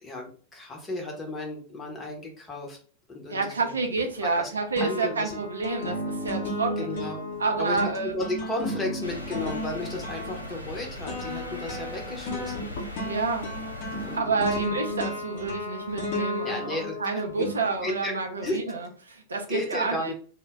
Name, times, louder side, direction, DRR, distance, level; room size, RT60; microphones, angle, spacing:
voice 1, 0.0-2.8 3.1-3.7 4.2-4.5 4.8-5.4 6.8-7.2 7.6-7.8 8.1-12.7 14.0-14.6 16.4-17.0 17.3-17.5 17.8-18.6 19.5-20.1, left 2 dB, 20° left, 1 dB, 0.8 m, -34 dB
voice 2, 3.3-6.9 7.4-8.1 13.0-13.5 14.2-20.1, right 4 dB, 75° right, 3 dB, 0.4 m, -29 dB
sound 1, 4.0-4.4 4.8-18.2, left 1 dB, 50° left, 0.7 m, -34 dB
sound 2, 9.0-14.2, left 1 dB, 85° left, 0.4 m, -40 dB
2.1 x 2.0 x 3.5 m, 0.42 s
figure-of-eight pair, 90°, 0 cm